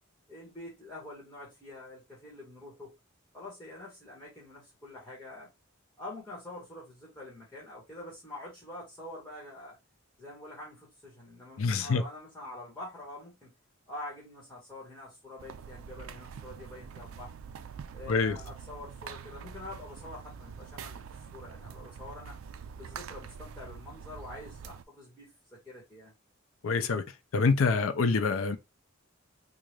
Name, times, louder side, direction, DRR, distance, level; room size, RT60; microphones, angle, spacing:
voice 1, 0.3-3.0 3.3-5.5 6.0-9.8 10.2-13.5 13.9-17.3 17.9-21.0 21.3-22.4 22.7-26.1, left 2 dB, 10° left, 1.5 m, -46 dB
voice 2, 11.6-12.0 18.1-18.4 26.6-27.0 27.3-28.6, left 4 dB, 80° left, 0.5 m, -26 dB
sound 1, 15.4-24.8, right 6 dB, 85° right, 0.4 m, -45 dB
3.7 x 2.5 x 3.2 m
head